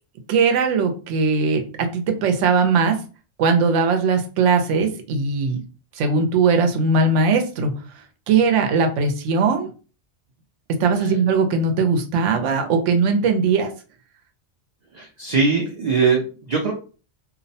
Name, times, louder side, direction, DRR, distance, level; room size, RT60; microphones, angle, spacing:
voice 1, 0.3-3.0 3.4-5.6 6.0-7.7 8.3-9.7 10.7-13.7, right 4 dB, 85° right, 5 dB, 0.9 m, -19 dB
voice 2, 14.9-16.7, right 4 dB, 65° right, 0 dB, 0.4 m, -21 dB
2.6 x 2.0 x 2.6 m, 0.36 s
omnidirectional pair, 1.2 m